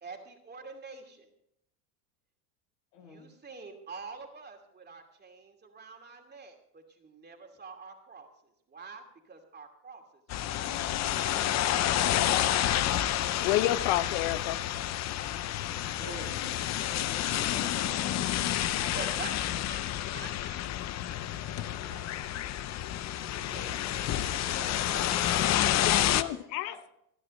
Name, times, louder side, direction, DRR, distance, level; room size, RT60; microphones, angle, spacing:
voice 1, 0.0-1.3 3.0-8.3 8.7-11.0 12.0-12.9 16.0-16.4 18.9-19.4 19.7-19.8 20.1-20.6 21.6-22.2 23.1-25.3 26.6-26.9, right 4 dB, 20° right, 3 dB, 2.6 m, -47 dB
sound 1, 10.3-26.2, left 12 dB, 35° left, 0.6 m, -29 dB
voice 2, 13.4-14.6 25.5-26.9, left 14 dB, 65° left, 13 dB, 1.1 m, -30 dB
voice 3, 16.0-19.3 23.5-26.9, left 6 dB, 85° left, 4 dB, 4.0 m, -48 dB
28.5 x 9.8 x 3.2 m, 0.78 s
supercardioid pair, 125°, 49 cm